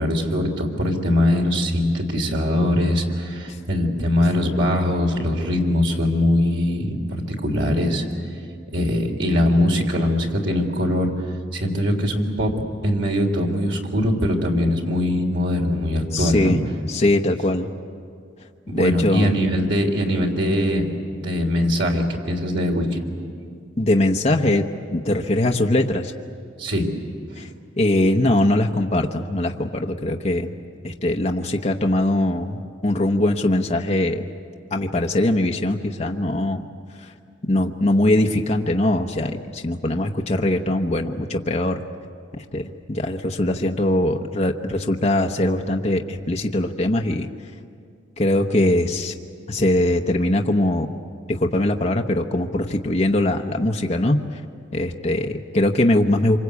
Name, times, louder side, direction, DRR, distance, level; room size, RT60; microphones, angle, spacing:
voice 1, 0.0-7.0 7.3-8.0 8.7-11.1 11.5-12.5 12.8-16.6 18.7-20.9 21.1-23.0 26.6-26.9 27.3-27.4, left 1 dB, 70° right, 2 dB, 3.5 m, -21 dB
voice 2, 16.1-16.6 16.9-17.7 18.7-19.3 23.8-26.1 27.4-27.5 27.8-30.5 30.8-34.2 34.7-36.6 37.0-37.1 37.5-41.8 42.5-47.3 48.2-49.1 49.5-50.9 51.3-54.2 54.7-56.4, left 1 dB, 35° left, 2 dB, 1.0 m, -21 dB
26.5 x 25.5 x 8.4 m, 2.3 s
head